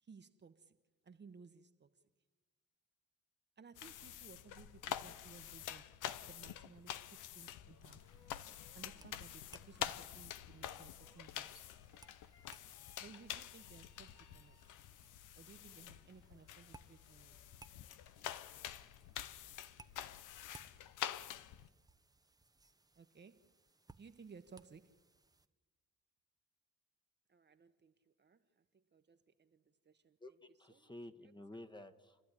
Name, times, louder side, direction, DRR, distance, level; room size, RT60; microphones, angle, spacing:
voice 1, 0.0-0.8 1.0-2.0 3.6-6.0 6.3-7.0 7.3-8.1 8.7-11.7 13.0-14.6 15.4-17.4 23.0-23.5 23.9-25.0 27.3-30.2 30.7-30.9, right 5 dB, 35° right, 1.2 m, -59 dB
sound 1, 3.7-21.7, left 11 dB, 85° left, 0.9 m, -47 dB
sound 2, 6.9-15.1, left 5 dB, 55° left, 2.0 m, -71 dB
sound 3, 8.0-25.5, right 2 dB, 10° right, 0.9 m, -65 dB
voice 2, 30.2-32.2, left 1 dB, 15° left, 1.3 m, -52 dB
29.5 x 12.0 x 9.9 m
cardioid pair, 90°, 30 cm